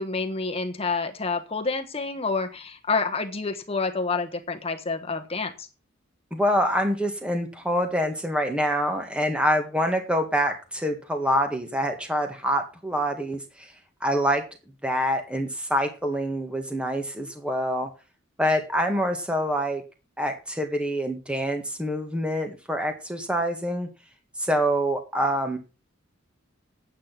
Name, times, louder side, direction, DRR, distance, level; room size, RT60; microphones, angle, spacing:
voice 1, 0.0-5.7, left 4 dB, 30° left, 6 dB, 1.2 m, -28 dB
voice 2, 6.3-13.7 14.0-14.4 14.8-17.9 18.4-19.8 20.2-23.9 24.4-25.6, equal, 5° right, 5 dB, 1.7 m, -26 dB
10.0 x 8.8 x 5.9 m, 0.32 s
head